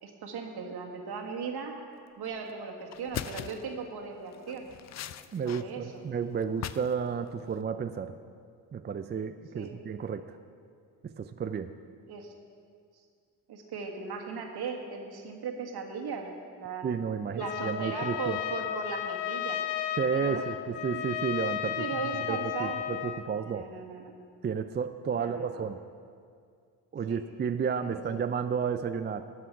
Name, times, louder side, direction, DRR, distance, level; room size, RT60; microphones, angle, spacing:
voice 1, 0.0-1.7 2.2-4.7 5.4-6.0 9.5-9.7 12.1-12.3 13.5-16.9 17.4-19.6 20.1-20.5 20.9-21.0 21.8-22.8 23.3-24.1 25.2-25.6 27.1-27.2 27.8-28.2, right 5 dB, 60° right, 2 dB, 1.7 m, -38 dB
sound 1, 2.3-2.5 2.9-3.7 4.3-5.6 5.9-7.0 7.3-7.6, left 10 dB, 40° left, 0.4 m, -40 dB
voice 2, 5.3-8.1 8.7-10.4 11.0-11.7 16.8-18.4 20.0-21.9 22.3-23.7 24.4-25.8 26.9-29.2, right 6 dB, 25° right, 9 dB, 0.4 m, -32 dB
Trumpet, 17.4-23.3, left 11 dB, 70° left, 0.7 m, -34 dB
12.5 x 7.5 x 5.8 m, 2.2 s
supercardioid pair, 70°, 43 cm